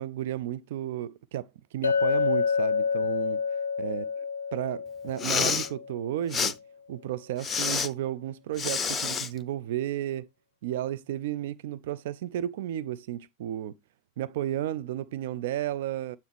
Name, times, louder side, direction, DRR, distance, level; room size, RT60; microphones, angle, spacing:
voice 1, 0.0-3.4 3.8-4.0 4.5-6.5 6.9-10.3 10.6-13.7 14.2-16.2, right 12 dB, 55° right, 0.4 m, -33 dB
Chink clink, 1.8-6.0, left 6 dB, 70° left, 0.4 m, -28 dB
Respiratory sounds, 5.1-5.7 6.3-6.5 7.4-7.9 8.6-9.3, left 6 dB, 15° left, 0.7 m, -28 dB
9.1 x 4.1 x 3.4 m
figure-of-eight pair, 90°, 0 cm